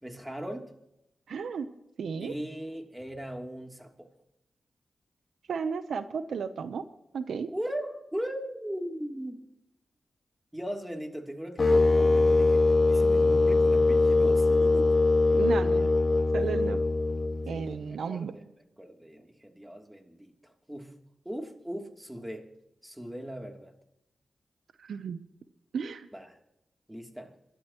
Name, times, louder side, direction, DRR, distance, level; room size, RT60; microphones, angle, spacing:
voice 1, 0.0-0.7 2.2-4.1 7.5-9.4 10.5-14.9 15.3-15.5 15.8-15.9 16.2-16.6 17.5-18.5 18.8-20.9 21.2-22.5 22.8-23.7 26.1-26.4 26.9-27.3, equal, 10° right, 3 dB, 3.0 m, -39 dB
voice 2, 1.3-1.7 2.0-2.3 5.5-6.8 7.1-7.5 15.3-16.0 16.3-16.8 17.5-18.3 24.8-25.2 25.7-26.1, right 6 dB, 85° right, 12 dB, 0.8 m, -33 dB
sound 1, 11.6-17.7, left 3 dB, 45° left, 2.8 m, -22 dB
26.5 x 13.0 x 3.0 m, 0.86 s
cardioid pair, 55°, 0 cm